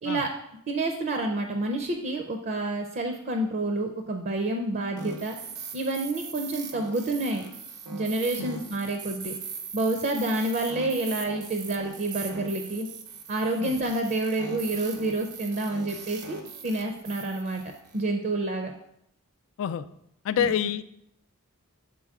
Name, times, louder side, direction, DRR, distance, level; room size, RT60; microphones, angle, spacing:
voice 1, 0.7-5.4 5.7-7.4 7.9-9.4 9.7-12.9 13.3-16.4 16.6-17.6 17.9-18.7 20.4-20.5, right 2 dB, 40° right, 4 dB, 0.5 m, -28 dB
sound 1, 5.0-18.0, right 5 dB, 90° right, 0.8 m, -40 dB
voice 2, 20.2-20.8, left 9 dB, 60° left, 14 dB, 0.3 m, -27 dB
7.6 x 4.0 x 3.6 m, 0.77 s
head